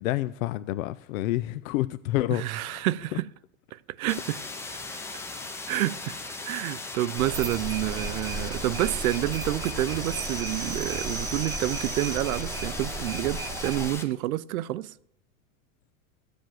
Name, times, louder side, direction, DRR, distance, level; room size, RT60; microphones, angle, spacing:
voice 1, 0.0-2.9, left 16 dB, 75° left, 0.6 m, -29 dB
voice 2, 2.3-3.3 3.7-4.4 5.7-6.2 6.4-14.9, right 15 dB, 85° right, 0.6 m, -29 dB
sound 1, 4.1-14.0, left 3 dB, 5° left, 0.5 m, -38 dB
sound 2, 7.2-13.9, right 3 dB, 10° right, 0.9 m, -34 dB
14.0 x 5.1 x 7.7 m
supercardioid pair, 145°, 41 cm